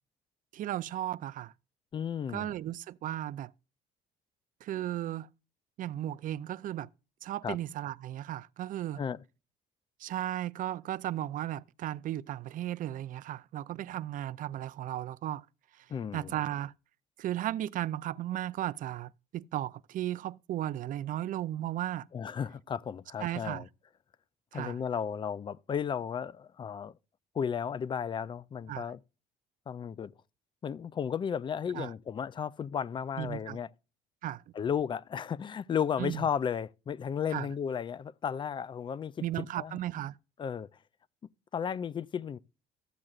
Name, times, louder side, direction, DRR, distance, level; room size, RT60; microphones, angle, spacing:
voice 1, 0.5-1.5 2.3-3.5 4.6-5.3 5.8-6.9 7.2-9.0 10.0-15.4 15.7-15.9 16.1-16.7 17.2-22.1 23.2-23.6 24.5-24.8 28.7-28.9 31.7-31.9 33.2-33.6 34.2-34.4 36.0-36.2 37.3-37.5 39.2-40.2, right 13 dB, 55° right, 0.4 m, -35 dB
voice 2, 1.9-2.5 7.4-7.6 9.0-9.2 15.9-16.3 22.1-23.7 24.5-27.0 27.3-29.0 29.7-30.1 30.6-33.7 34.5-39.8 40.4-40.7 41.5-42.4, left 7 dB, 30° left, 0.4 m, -34 dB
13.5 x 7.6 x 2.4 m
cardioid pair, 110°, 17 cm